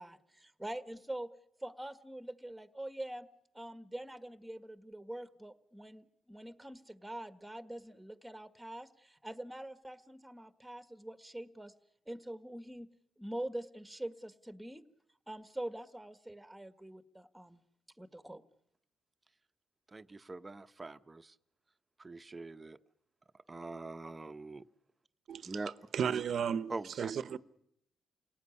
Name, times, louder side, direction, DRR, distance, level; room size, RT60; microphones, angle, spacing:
voice 1, 0.0-1.3 1.6-3.3 3.5-11.7 12.1-12.9 13.2-14.8 15.3-17.6 18.0-18.4, right 1 dB, 5° right, 1.6 m, -44 dB
voice 2, 19.9-21.3 22.0-22.8 23.5-24.6 25.4-25.7 26.7-27.1, right 3 dB, 20° right, 1.0 m, -43 dB
voice 3, 25.9-27.4, right 7 dB, 60° right, 1.0 m, -34 dB
28.5 x 18.5 x 9.8 m
cardioid pair, 90°, 0 cm